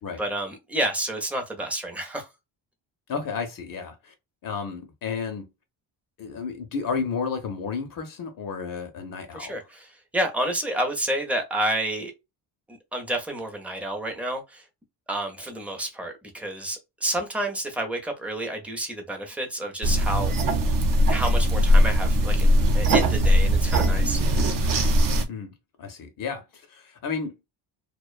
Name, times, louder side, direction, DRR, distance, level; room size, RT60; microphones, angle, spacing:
voice 1, 0.2-2.3 9.3-12.1 12.7-14.6 15.1-20.3 21.1-22.5 22.7-24.2, right 1 dB, 5° right, 0.5 m, -29 dB
voice 2, 3.1-4.1 4.4-5.4 6.2-9.6 25.3-25.5 25.8-27.3, left 5 dB, 50° left, 0.6 m, -32 dB
sound 1, 19.8-25.2, equal, 50° right, 0.6 m, -20 dB
2.4 x 2.2 x 2.3 m
cardioid pair, 135°, 45 cm